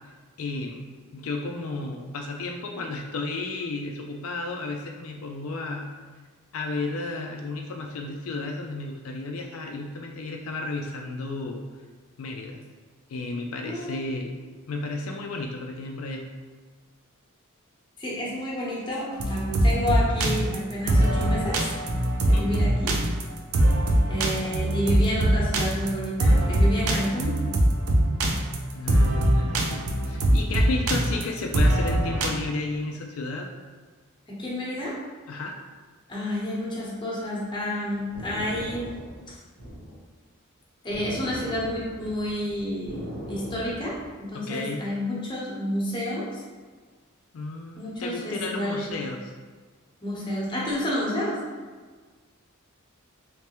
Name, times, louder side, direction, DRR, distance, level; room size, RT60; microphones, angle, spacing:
voice 1, 0.4-5.9 6.5-11.6 12.2-12.6 13.1-14.4 14.7-16.2 22.3-22.5 28.7-33.5 35.3-35.6 44.3-44.8 47.3-49.2, left 3 dB, 80° left, 2 dB, 0.4 m, -33 dB
voice 2, 13.6-14.0 18.0-21.7 22.3-22.9 24.1-27.4 34.3-34.9 36.1-38.9 39.3-39.4 40.8-46.4 47.8-48.9 50.0-51.4, left 1 dB, 20° left, -5 dB, 0.9 m, -30 dB
sound 1, 19.1-32.3, right 1 dB, 90° right, 0.5 m, -22 dB
sound 2, 38.1-40.0 40.9-44.2, equal, 55° right, 1.3 m, -39 dB
3.3 x 3.2 x 3.0 m, 1.4 s
head